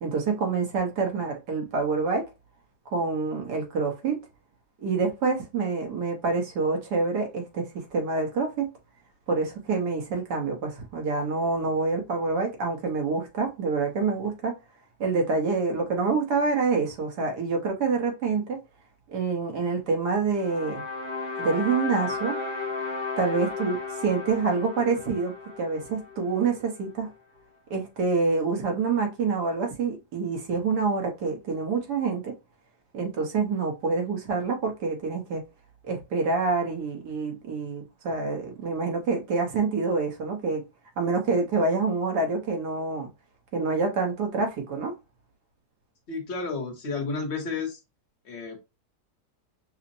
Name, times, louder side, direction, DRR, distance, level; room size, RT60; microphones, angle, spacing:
voice 1, 0.0-2.3 2.9-4.2 4.8-8.7 9.3-14.5 15.0-18.6 19.1-20.8 21.4-22.4 23.2-27.1 27.7-32.3 32.9-35.4 35.9-40.6 41.0-43.1 43.5-44.9, right 4 dB, 75° right, 1.7 m, -27 dB
sound 1, 20.4-26.6, left 4 dB, 20° left, 1.0 m, -34 dB
voice 2, 46.1-47.8 48.2-48.6, left 4 dB, 50° left, 1.0 m, -31 dB
5.6 x 2.1 x 2.6 m
omnidirectional pair, 1.8 m